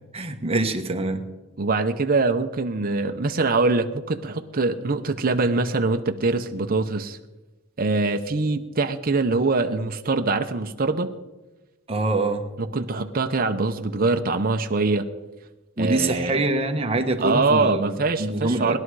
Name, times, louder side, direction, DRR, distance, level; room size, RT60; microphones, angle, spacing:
voice 1, 0.1-1.2 11.9-12.5 15.8-18.8, right 2 dB, 30° right, 5 dB, 1.2 m, -25 dB
voice 2, 1.6-7.2 7.8-11.1 12.6-15.1 15.8-16.5 17.2-18.8, right 3 dB, 45° right, 6 dB, 0.8 m, -23 dB
19.5 x 11.5 x 4.8 m, 1.1 s
head